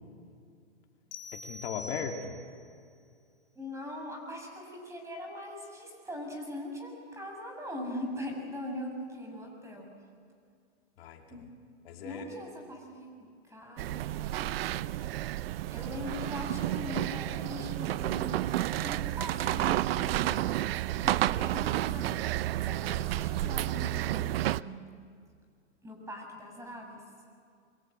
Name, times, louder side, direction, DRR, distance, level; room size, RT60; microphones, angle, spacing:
sound 1, 1.1-2.6, left 2 dB, 40° left, 2.8 m, -44 dB
voice 1, 1.3-2.4 11.0-11.5 11.8-12.3, left 6 dB, 60° left, 3 dB, 2.7 m, -38 dB
voice 2, 3.6-9.9 11.3-11.5 12.0-13.1 13.5-14.8 15.7-20.4 20.9-24.9 25.8-27.0, left 1 dB, 10° right, 2 dB, 5.8 m, -41 dB
sound 2, 13.8-24.6, right 14 dB, 55° right, 0.6 m, -31 dB
24.5 x 24.0 x 9.0 m, 2.2 s
hypercardioid pair, 140°, 34 cm